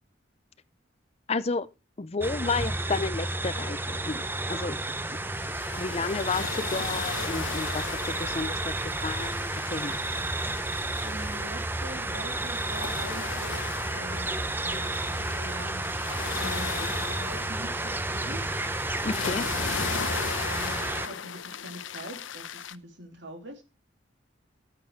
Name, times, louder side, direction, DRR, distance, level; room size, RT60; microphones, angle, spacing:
voice 1, 1.3-1.7 2.0-4.2 4.5-4.8 5.8-10.0 16.8-16.9 19.0-19.4, left 4 dB, 35° left, 0.5 m, -32 dB
sound 1, 2.2-21.1, right 2 dB, 10° right, 0.6 m, -31 dB
sound 2, 4.5-4.6 5.0-22.7, left 7 dB, 85° left, 0.7 m, -38 dB
voice 2, 10.9-14.3 14.6-18.4 19.0-19.4 19.9-23.6, equal, 70° right, 3.2 m, -43 dB
13.0 x 7.7 x 4.5 m
head